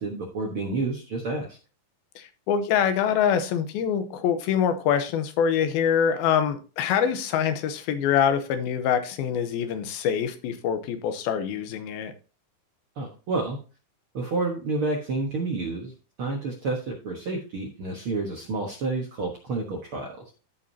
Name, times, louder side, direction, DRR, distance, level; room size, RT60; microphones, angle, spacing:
voice 1, 0.0-1.6 13.0-13.6 14.1-15.9 16.2-20.1, right 3 dB, 60° right, 1.4 m, -29 dB
voice 2, 2.2-12.1, left 8 dB, 90° left, 2.7 m, -25 dB
14.0 x 5.2 x 2.8 m
omnidirectional pair, 4.2 m